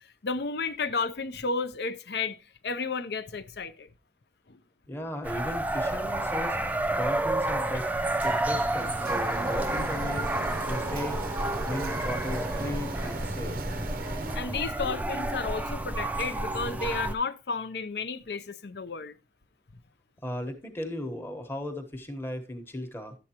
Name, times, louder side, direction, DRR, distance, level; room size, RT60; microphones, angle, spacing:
voice 1, 0.2-2.4 2.6-3.9 4.5-4.6 14.3-19.1, left 4 dB, 60° left, 0.6 m, -32 dB
voice 2, 4.9-6.6 6.9-7.9 8.2-10.3 10.7-11.2 11.6-13.6 20.2-23.2, left 1 dB, 10° left, 1.0 m, -36 dB
sound 1, 5.2-17.1, right 1 dB, 10° right, 0.4 m, -30 dB
Printer, 8.2-14.4, right 3 dB, 50° right, 0.6 m, -38 dB
11.5 x 7.9 x 2.9 m
head